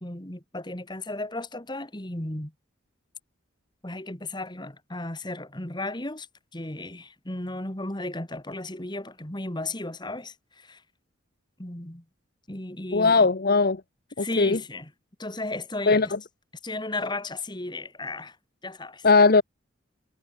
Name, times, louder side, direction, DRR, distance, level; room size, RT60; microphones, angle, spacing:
voice 1, 0.0-2.5 3.8-6.3 6.5-10.8 11.6-12.0 12.5-13.3 14.2-14.9 15.2-16.1 16.6-18.4 18.6-19.1, left 2 dB, 20° left, 2.2 m, -34 dB
voice 2, 12.9-13.8 14.2-14.6 15.9-16.1 19.0-19.4, left 4 dB, 45° left, 0.8 m, -19 dB
head